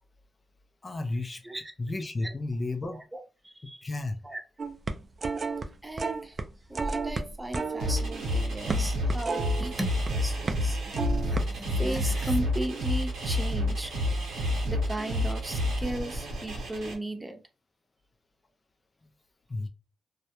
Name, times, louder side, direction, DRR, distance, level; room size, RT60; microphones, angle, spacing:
voice 1, 0.8-1.4 1.8-3.0 3.8-4.2 19.0-19.1 19.5-19.7, left 2 dB, 35° left, 5 dB, 0.4 m, -32 dB
voice 2, 2.9-3.8 4.2-4.4 5.8-6.4 6.7-13.9 14.7-17.4, right 1 dB, 15° right, 4 dB, 0.7 m, -36 dB
sound 1, 4.6-5.6 6.0-6.5 6.7-10.1 10.4-10.7 10.9-11.4, right 4 dB, 45° right, 0.3 m, -32 dB
sound 2, 7.8-16.9, left 1 dB, 80° right, 0.8 m, -29 dB
2.2 x 2.0 x 2.8 m, 0.31 s
supercardioid pair, 55°, 0 cm